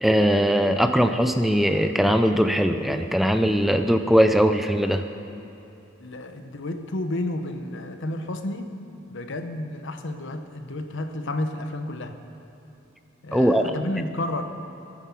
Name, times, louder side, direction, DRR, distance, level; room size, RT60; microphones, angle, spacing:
voice 1, 0.0-5.0 13.3-13.8, equal, ahead, 7 dB, 0.4 m, -20 dB
voice 2, 6.0-8.8 9.1-12.2 13.2-14.4, left 1 dB, 65° left, 7 dB, 1.0 m, -31 dB
16.0 x 10.0 x 7.4 m, 3.0 s
head